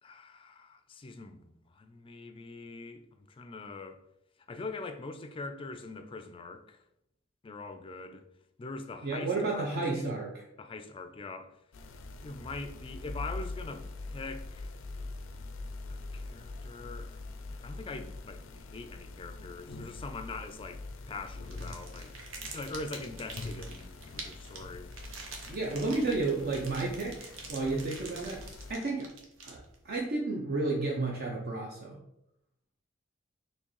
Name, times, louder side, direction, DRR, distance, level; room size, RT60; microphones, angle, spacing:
voice 1, 0.0-3.0 3.3-4.0 4.5-6.8 7.4-8.2 8.6-10.2 10.6-11.6 12.2-14.7 15.9-17.2 17.5-22.1 22.5-24.9 25.8-26.1, left 3 dB, 25° left, 0.4 m, -43 dB
voice 2, 9.0-10.3 25.5-28.4 28.7-29.1 29.4-32.0, right 3 dB, 50° right, 0.6 m, -32 dB
sound 1, 11.7-28.7, left 2 dB, 90° left, 0.4 m, -44 dB
sound 2, 21.5-29.9, right 4 dB, 90° right, 0.9 m, -46 dB
4.4 x 3.1 x 3.1 m
head